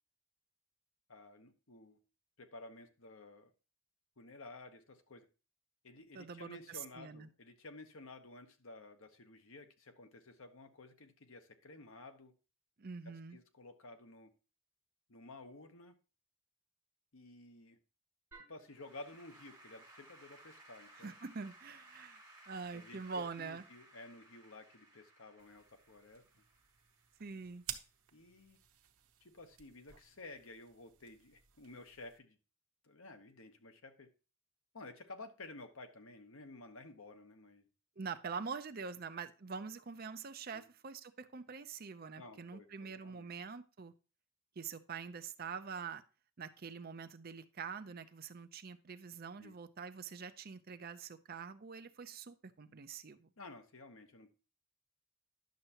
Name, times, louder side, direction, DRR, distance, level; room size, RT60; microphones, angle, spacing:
voice 1, 1.1-2.0 2.4-3.5 4.2-5.3 5.8-12.3 13.0-14.3 15.1-15.9 17.1-17.8 18.5-21.1 22.7-26.2 28.1-28.6 29.2-32.4 32.8-34.1 34.7-37.7 40.5-40.7 42.2-43.3 49.4-49.6 53.4-54.3, left 2 dB, 70° left, 1.1 m, -53 dB
voice 2, 6.1-7.3 12.8-13.4 20.9-23.6 27.2-27.6 38.0-43.9 44.6-46.0 46.4-53.3, right 5 dB, 45° right, 0.6 m, -45 dB
Applause / Keyboard (musical), 18.3-27.6, right 2 dB, 10° right, 3.9 m, -60 dB
sound 1, 25.4-32.2, right 11 dB, 90° right, 1.0 m, -53 dB
10.5 x 6.7 x 2.9 m
head